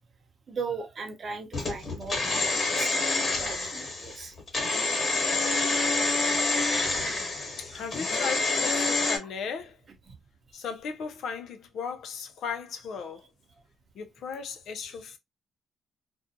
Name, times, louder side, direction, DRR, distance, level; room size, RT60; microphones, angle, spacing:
voice 1, 0.5-4.3 4.8-5.2 6.0-6.1 6.6-6.9 7.7-7.8 10.1-10.2, right 4 dB, 45° right, 0.8 m, -39 dB
sound 1, 1.5-9.2, left 3 dB, 40° left, 1.2 m, -27 dB
voice 2, 7.6-9.8 10.5-13.3 13.9-15.2, left 6 dB, 70° left, 0.6 m, -36 dB
2.6 x 2.2 x 2.7 m
cardioid pair, 90°, 0 cm